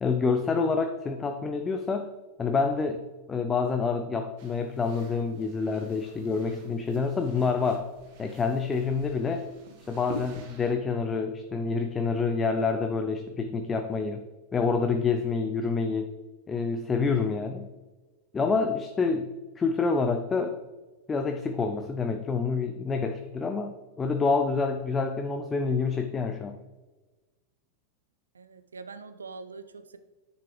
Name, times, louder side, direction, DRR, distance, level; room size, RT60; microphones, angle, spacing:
voice 1, 0.0-2.1 2.4-3.0 3.3-7.9 8.2-9.5 9.9-14.2 14.5-16.1 16.5-17.7 18.3-20.6 21.1-26.6, left 4 dB, 20° left, 5 dB, 0.6 m, -27 dB
sound 1, 4.4-10.7, right 1 dB, 50° right, 1.6 m, -47 dB
voice 2, 28.3-30.0, right 4 dB, 75° right, 10 dB, 0.6 m, -43 dB
9.8 x 6.8 x 3.4 m, 1.2 s
figure-of-eight pair, 90°, 0 cm